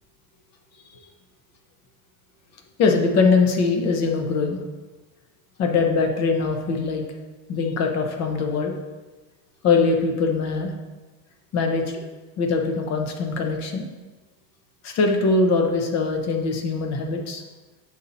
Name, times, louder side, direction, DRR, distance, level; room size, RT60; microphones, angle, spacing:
voice 1, 2.8-4.6 5.6-7.0 7.5-8.7 9.6-10.7 11.5-12.0 12.4-13.8 14.8-17.4, left 4 dB, 45° left, 3 dB, 0.9 m, -22 dB
6.4 x 4.2 x 4.2 m, 1.2 s
cardioid pair, 160°, 38 cm